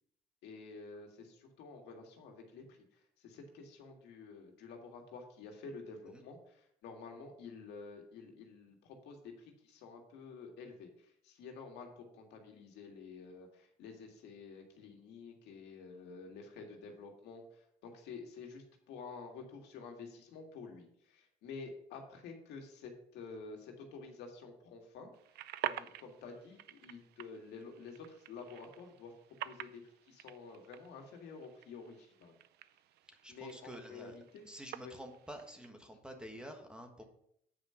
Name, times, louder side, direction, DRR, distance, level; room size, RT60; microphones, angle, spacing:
voice 1, 0.4-2.8 3.2-25.1 25.6-29.1 29.4-29.8 30.1-32.3 33.3-34.4 34.8-34.9, left 4 dB, 85° left, 2 dB, 2.0 m, -50 dB
sound 1, 25.1-35.7, right 14 dB, 75° right, 0.5 m, -48 dB
voice 2, 33.1-34.2 34.4-37.0, equal, 5° right, 4 dB, 1.5 m, -49 dB
8.7 x 5.1 x 5.7 m, 0.71 s
cardioid pair, 110°, 17 cm